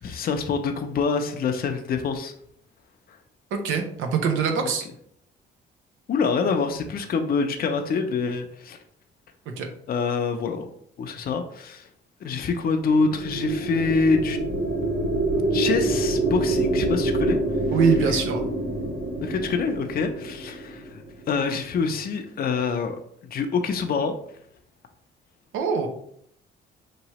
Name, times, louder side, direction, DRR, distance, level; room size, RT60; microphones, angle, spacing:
voice 1, 0.0-2.3 3.1-3.2 4.6-4.7 6.1-8.8 9.9-10.7 11.0-11.9 12.2-14.4 15.5-17.4 19.2-23.0 23.3-24.2, left 5 dB, 50° left, 5 dB, 0.5 m, -26 dB
voice 2, 3.5-4.8 9.6-9.7 17.7-18.4 25.5-25.9, right 5 dB, 90° right, 4 dB, 0.7 m, -23 dB
sound 1, 12.8-21.3, right 2 dB, 70° right, 1.3 m, -26 dB
4.6 x 3.0 x 2.9 m, 0.67 s
cardioid pair, 90°, 20 cm